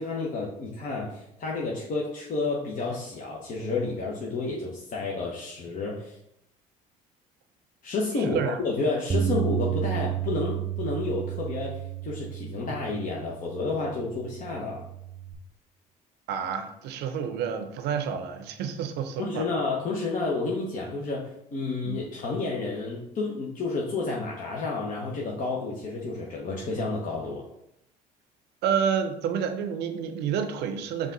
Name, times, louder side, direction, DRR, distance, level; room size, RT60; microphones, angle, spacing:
voice 1, 0.0-6.2 7.8-14.8 19.2-27.5, left 3 dB, 50° left, -3 dB, 0.9 m, -30 dB
voice 2, 8.2-8.6 16.3-19.5 21.8-22.0 28.6-31.1, right 7 dB, 65° right, 8 dB, 0.7 m, -29 dB
Bass guitar, 9.1-15.3, right 10 dB, 30° right, 0.5 m, -32 dB
5.3 x 2.4 x 3.8 m, 0.79 s
hypercardioid pair, 65°, 18 cm